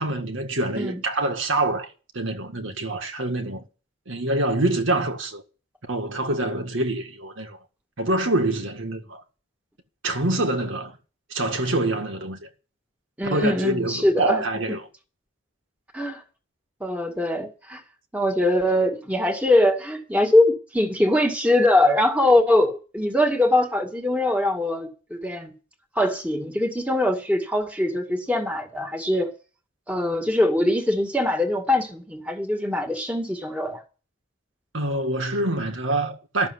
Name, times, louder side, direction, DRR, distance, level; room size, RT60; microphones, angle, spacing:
voice 1, 0.0-3.6 4.1-5.4 5.8-7.6 8.0-9.2 10.0-11.0 11.3-12.5 13.2-14.8 34.7-36.5, right 2 dB, 70° right, 1.9 m, -25 dB
voice 2, 13.2-14.4 14.7-14.8 15.9-16.2 16.8-17.8 18.1-25.5 26.0-29.3 29.9-33.8, left 1 dB, 5° right, 1.9 m, -22 dB
12.5 x 7.0 x 9.8 m
head